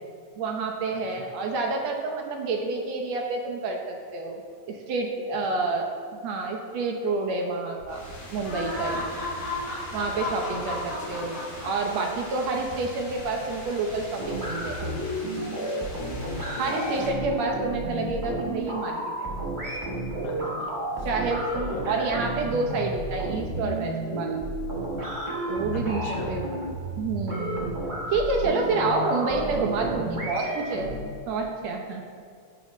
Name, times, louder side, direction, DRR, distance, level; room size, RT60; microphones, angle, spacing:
voice 1, 0.4-4.4 4.7-8.0 8.3-9.1 9.9-14.9 16.6-19.0 21.0-24.4 25.5-26.0 26.3-26.5 27.0-27.7 28.1-30.9 31.3-32.1, right 3 dB, 70° right, 1 dB, 1.8 m, -28 dB
voice 2, 0.9-1.3 5.5-5.6 10.4-11.4 16.1-16.8 20.2-20.7 21.0-21.1 21.5-21.9 25.7-26.4 28.8-29.0, left 3 dB, 85° left, 0 dB, 2.7 m, -41 dB
Wind on microphone, 7.8-14.1, right 3 dB, 90° right, 2.4 m, -46 dB
sound 1, 7.9-17.1, left 2 dB, 45° left, 3.2 m, -37 dB
sound 2, 14.2-31.0, right 1 dB, 55° right, 0.5 m, -32 dB
15.0 x 5.5 x 3.1 m, 2.2 s
omnidirectional pair, 3.5 m